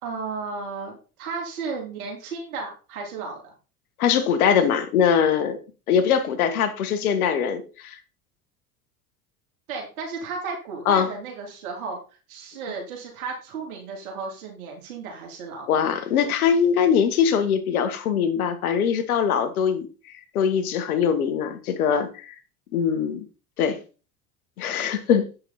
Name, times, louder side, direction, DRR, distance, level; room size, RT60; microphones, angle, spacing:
voice 1, 0.0-3.5 9.7-12.0 12.3-15.7, right 4 dB, 75° right, 3.4 m, -34 dB
voice 2, 4.0-5.6 5.9-8.0 10.9-11.1 15.7-19.9 20.3-22.3 22.7-23.3 23.6-23.8 24.6-25.3, left 7 dB, 80° left, 1.6 m, -22 dB
8.9 x 6.6 x 4.2 m
hypercardioid pair, 75°, 43 cm